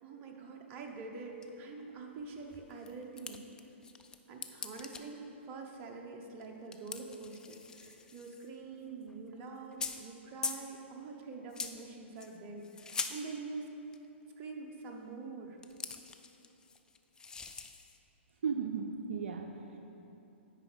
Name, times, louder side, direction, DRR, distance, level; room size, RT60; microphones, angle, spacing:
voice 1, 0.0-3.4 4.3-5.2 5.5-13.7 14.4-15.6, right 4 dB, 35° right, 1 dB, 1.0 m, -45 dB
sound 1, 0.9-1.0 1.4-1.5 1.8-1.9 2.2-4.2 4.4-5.0 6.4-6.5 6.7-8.6 8.9-9.1 9.6-10.1 10.4-10.6 11.5-11.8 12.2-13.2 13.9-14.1 15.6-18.0, left 5 dB, 10° left, 0.4 m, -42 dB
voice 2, 18.4-19.8, right 6 dB, 70° right, 4 dB, 0.5 m, -36 dB
9.6 x 5.1 x 5.2 m, 3.0 s
hypercardioid pair, 125°, 7 cm